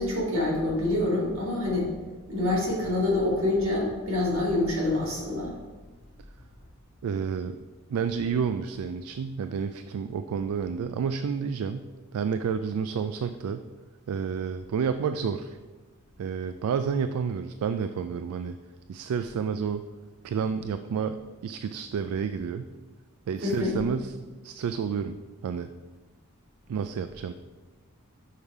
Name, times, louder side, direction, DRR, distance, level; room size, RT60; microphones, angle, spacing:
voice 1, 0.0-1.9 2.3-5.5 23.4-23.8, left 2 dB, 70° right, -4 dB, 2.4 m, -26 dB
voice 2, 7.0-7.5 7.9-13.6 14.1-15.6 16.2-18.6 18.9-19.8 20.2-22.7 23.3-24.1 24.4-25.2 25.4-25.7 26.7-27.3, right 6 dB, 90° right, 10 dB, 0.3 m, -30 dB
6.5 x 5.4 x 4.7 m, 1.3 s
head